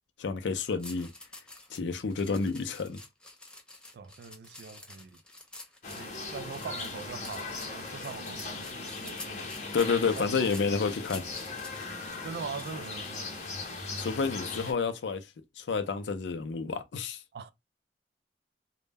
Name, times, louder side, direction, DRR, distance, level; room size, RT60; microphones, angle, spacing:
voice 1, 0.2-1.1 1.7-3.0 8.3-8.4 9.7-11.2 14.0-15.2 15.6-17.2, left 5 dB, 80° left, 0.4 m, -30 dB
sound 1, 0.8-13.5 14.0-14.2, left 2 dB, 5° left, 0.4 m, -49 dB
voice 2, 3.9-5.2 6.0-9.5 10.2-10.5 12.1-13.6 17.3-17.5, right 5 dB, 60° right, 0.3 m, -42 dB
sound 2, 5.8-14.7, left 3 dB, 40° left, 0.7 m, -39 dB
2.2 x 2.0 x 3.3 m
head